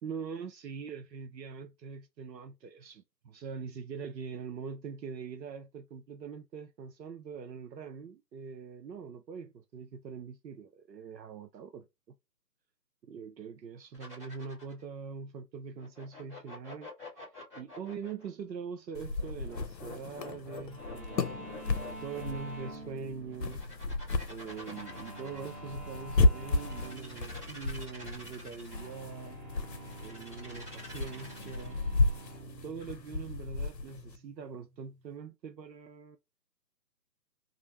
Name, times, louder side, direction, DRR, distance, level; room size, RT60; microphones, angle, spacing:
voice 1, 0.0-11.9 13.0-16.9 17.5-23.6 24.3-29.4 30.0-31.8 32.4-36.2, right 6 dB, 80° right, 0.6 m, -43 dB
sound 1, 13.9-14.8 15.8-18.3 19.1-22.6 23.3-25.7 26.5-28.9 29.9-31.8, left 2 dB, 10° right, 0.8 m, -48 dB
sound 2, 18.9-34.2, left 3 dB, 85° left, 0.7 m, -34 dB
sound 3, 20.7-35.2, right 2 dB, 55° right, 1.2 m, -48 dB
2.4 x 2.0 x 2.9 m
figure-of-eight pair, 150°, 50 cm